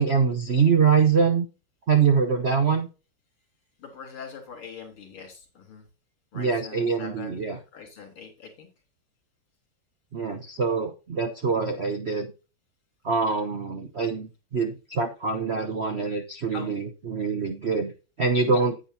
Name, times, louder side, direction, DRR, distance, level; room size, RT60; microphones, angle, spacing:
voice 1, 0.0-1.5 1.9-2.9 6.3-7.6 10.1-12.3 13.0-17.9 18.2-18.8, right 5 dB, 50° right, 6 dB, 0.7 m, -24 dB
voice 2, 3.8-5.9 6.3-8.7 16.5-16.7, left 5 dB, 70° left, 4 dB, 4.2 m, -42 dB
9.9 x 9.0 x 2.7 m, 0.31 s
omnidirectional pair, 2.4 m